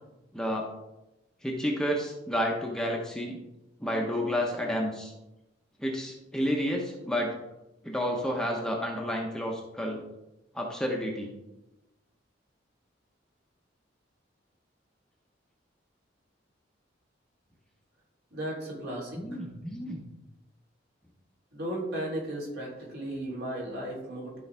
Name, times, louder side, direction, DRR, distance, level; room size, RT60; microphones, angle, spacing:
voice 1, 0.3-0.7 1.4-3.4 3.8-5.1 5.8-7.3 7.8-10.0 10.5-11.3 19.2-20.0, equal, 5° left, -1 dB, 1.0 m, -30 dB
voice 2, 18.3-19.2 21.5-24.4, right 1 dB, 60° right, -5 dB, 3.3 m, -35 dB
12.5 x 4.9 x 3.4 m, 0.97 s
head